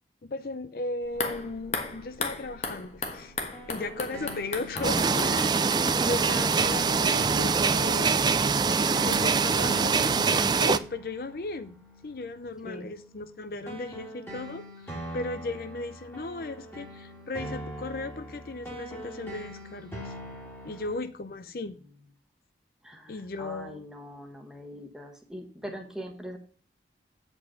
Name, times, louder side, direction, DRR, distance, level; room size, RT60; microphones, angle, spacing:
voice 1, 0.2-3.3 3.7-5.6 6.0-8.2 9.0-9.9 10.5-11.8 12.0-20.1 20.6-21.8 23.1-23.8, left 2 dB, 55° left, 0.5 m, -36 dB
sound 1, 1.0-8.2 8.4-8.5, left 4 dB, 35° left, 1.2 m, -37 dB
sound 2, 1.1-21.0, right 1 dB, 15° left, 1.9 m, -42 dB
sound 3, 4.8-10.8, right 5 dB, 25° right, 0.3 m, -24 dB
voice 2, 22.8-26.4, equal, 5° right, 1.3 m, -42 dB
8.3 x 5.3 x 5.7 m
head